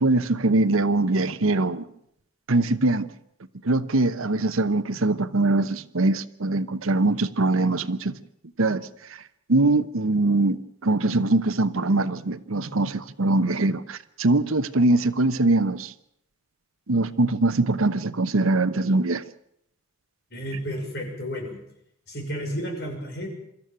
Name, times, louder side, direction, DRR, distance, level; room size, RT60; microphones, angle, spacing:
voice 1, 0.0-1.8 2.5-3.1 3.6-8.2 8.6-9.2 9.5-15.9 16.9-19.2, right 2 dB, 70° right, 14 dB, 1.0 m, -22 dB
voice 2, 20.3-21.6 22.1-23.3, equal, 50° left, 2 dB, 6.0 m, -32 dB
24.5 x 14.0 x 9.0 m, 0.74 s
head